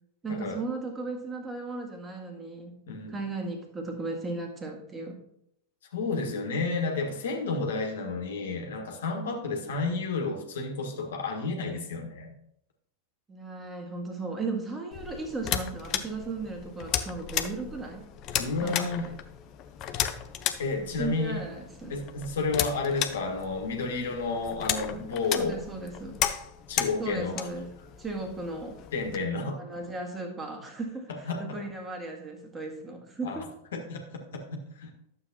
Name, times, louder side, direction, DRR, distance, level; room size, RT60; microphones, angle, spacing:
voice 1, 0.2-2.8 3.1-5.2 13.3-18.1 18.6-19.1 20.8-22.0 25.2-26.2 27.0-27.7 28.0-28.8 29.5-33.5, right 3 dB, 15° right, 2 dB, 1.9 m, -36 dB
voice 2, 2.9-3.2 5.9-12.3 18.4-19.1 20.6-21.4 21.9-25.6 26.7-27.5 28.9-29.6 31.3-31.4 33.2-33.4 33.7-34.0 34.3-34.4 34.8-34.9, left 3 dB, 60° left, 2 dB, 1.6 m, -31 dB
sound 1, 14.9-29.2, left 10 dB, 35° left, 0.7 m, -35 dB
11.5 x 7.4 x 2.9 m, 0.74 s
figure-of-eight pair, 90°, 0 cm